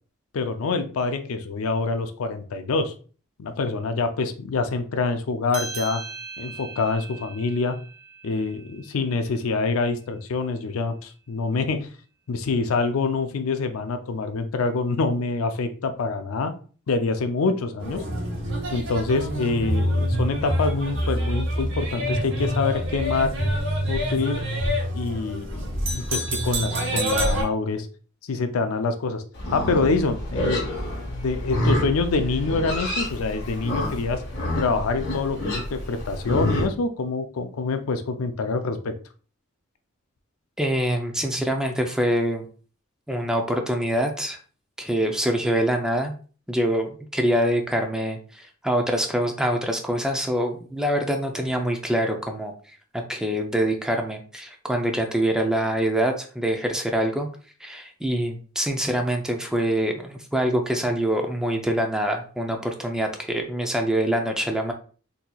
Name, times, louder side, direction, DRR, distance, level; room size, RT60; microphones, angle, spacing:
voice 1, 0.3-2.9 3.4-6.0 6.4-7.8 8.2-11.9 12.3-16.5 16.9-18.0 18.7-23.3 23.9-24.4 24.9-27.9 28.3-29.2 29.5-34.2 34.6-38.9, left 3 dB, 80° left, 8 dB, 0.4 m, -26 dB
sound 1, 5.5-10.4, right 4 dB, 80° right, 0.6 m, -40 dB
sound 2, 17.8-27.4, equal, 65° right, 1.0 m, -26 dB
Livestock farm animals working animals, 29.3-36.7, left 1 dB, 55° left, 1.3 m, -28 dB
voice 2, 40.6-42.5 43.1-44.4 44.8-46.1 46.5-52.5 52.9-57.3 57.6-64.7, right 1 dB, 5° right, 3 dB, 0.4 m, -25 dB
4.0 x 2.8 x 2.3 m, 0.40 s
head